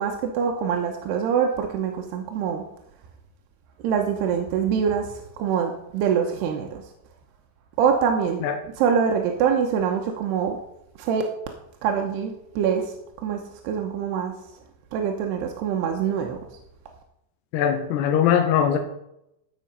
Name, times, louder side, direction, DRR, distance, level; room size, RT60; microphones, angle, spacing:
voice 1, 0.0-2.6 3.8-6.8 7.8-8.4 8.8-10.6 11.0-11.2 11.8-12.9 13.2-14.3 14.9-16.4, right 7 dB, 85° right, 3 dB, 3.0 m, -24 dB
voice 2, 17.5-18.8, left 9 dB, 85° left, 5 dB, 3.1 m, -21 dB
15.0 x 5.6 x 5.4 m, 0.81 s
omnidirectional pair, 4.7 m